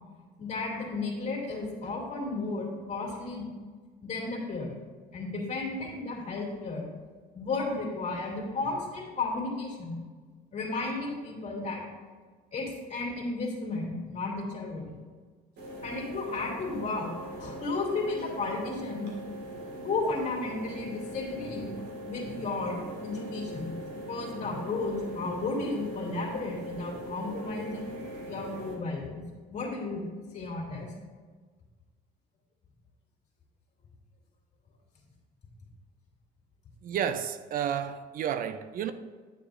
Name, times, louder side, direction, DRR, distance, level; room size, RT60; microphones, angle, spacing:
voice 1, 0.4-3.5 4.0-4.8 5.1-6.9 7.3-10.0 10.5-11.8 12.5-15.0 15.8-17.1 17.4-19.1 19.8-21.7 22.1-23.7 24.1-27.9 28.2-29.2 29.5-30.1 30.3-30.9, left 3 dB, 45° left, 2.5 m, -33 dB
sound 1, 15.6-28.7, right 1 dB, 85° right, 2.0 m, -41 dB
voice 2, 36.8-38.9, right 9 dB, 55° right, 0.4 m, -31 dB
10.5 x 6.9 x 2.5 m
cardioid pair, 110°, 17 cm